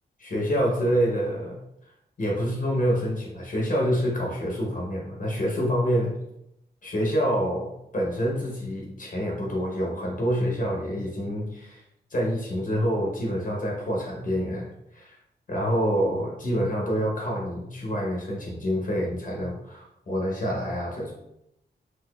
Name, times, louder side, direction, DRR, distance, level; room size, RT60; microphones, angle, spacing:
voice 1, 0.2-1.6 2.2-6.2 6.8-11.8 12.1-15.2 15.5-21.1, equal, 45° left, -3 dB, 0.7 m, -27 dB
3.9 x 2.5 x 2.2 m, 0.82 s
wide cardioid pair, 115°, 18 cm